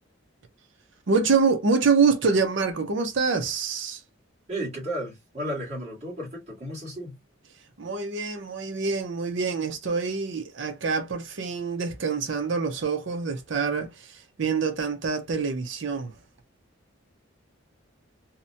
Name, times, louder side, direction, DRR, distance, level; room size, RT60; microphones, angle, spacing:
voice 1, 1.1-4.0 7.8-16.1, right 5 dB, 60° right, 0.5 m, -26 dB
voice 2, 4.5-7.2, right 1 dB, 30° right, 1.5 m, -33 dB
2.8 x 2.1 x 2.6 m
head